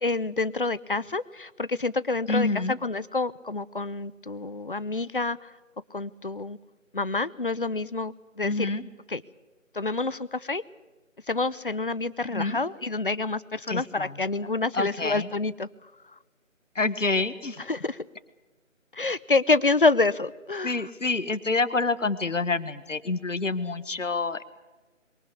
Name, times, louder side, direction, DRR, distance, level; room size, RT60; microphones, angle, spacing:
voice 1, 0.0-2.5 2.8-5.4 5.9-6.6 6.9-8.7 9.1-9.2 9.7-10.6 11.3-15.7 17.7-18.0 18.9-20.8, left 3 dB, 45° left, 17 dB, 0.7 m, -27 dB
voice 2, 2.3-2.8 8.4-8.9 12.3-12.6 13.7-15.3 16.7-17.6 20.6-24.4, left 3 dB, 70° left, 14 dB, 1.6 m, -28 dB
23.0 x 17.5 x 8.3 m, 1.2 s
figure-of-eight pair, 170°, 39 cm